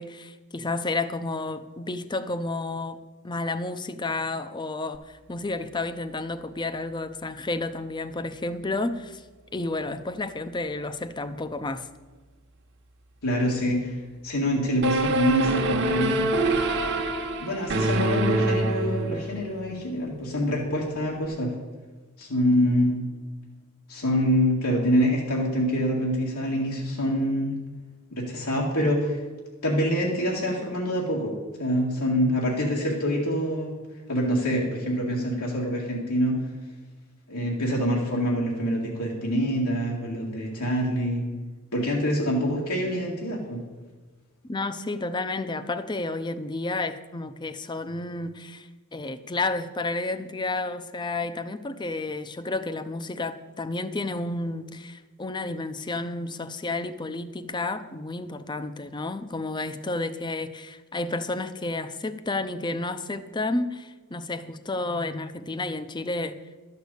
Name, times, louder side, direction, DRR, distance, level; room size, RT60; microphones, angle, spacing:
voice 1, 0.0-3.0 3.2-9.2 9.5-11.9 44.4-66.4, left 2 dB, 20° left, 11 dB, 0.6 m, -31 dB
voice 2, 13.2-14.0 14.2-16.3 17.4-21.5 22.2-23.0 23.9-27.6 28.1-29.2 29.6-33.7 34.1-36.4 37.3-41.3 41.7-43.6, equal, 85° left, -3 dB, 2.1 m, -25 dB
sound 1, 14.8-19.5, right 2 dB, 50° right, 1.1 m, -25 dB
12.5 x 6.6 x 8.2 m, 1.3 s
head